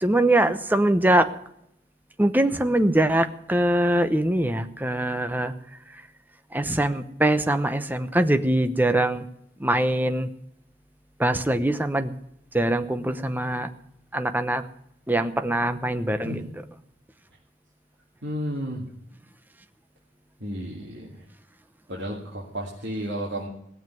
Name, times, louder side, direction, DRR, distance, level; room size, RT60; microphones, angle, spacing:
voice 1, 0.0-1.3 2.2-5.5 6.5-9.2 9.6-10.3 11.2-12.1 12.5-13.7 14.1-14.6 15.1-16.4, right 1 dB, 10° right, 9 dB, 0.8 m, -22 dB
voice 2, 18.2-18.8 20.4-21.2 21.9-23.5, equal, 65° right, -4 dB, 2.7 m, -32 dB
17.5 x 7.5 x 9.3 m, 0.76 s
head